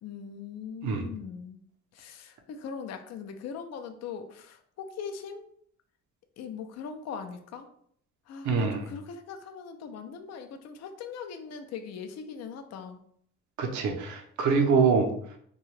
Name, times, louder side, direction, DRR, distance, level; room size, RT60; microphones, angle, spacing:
voice 1, 0.0-1.6 1.9-5.4 6.4-7.7 8.3-13.0, left 6 dB, 60° left, 6 dB, 0.5 m, -40 dB
voice 2, 8.4-8.9 13.6-15.1, right 5 dB, 70° right, 3 dB, 0.6 m, -24 dB
2.7 x 2.3 x 3.1 m, 0.65 s
cardioid pair, 90°, 30 cm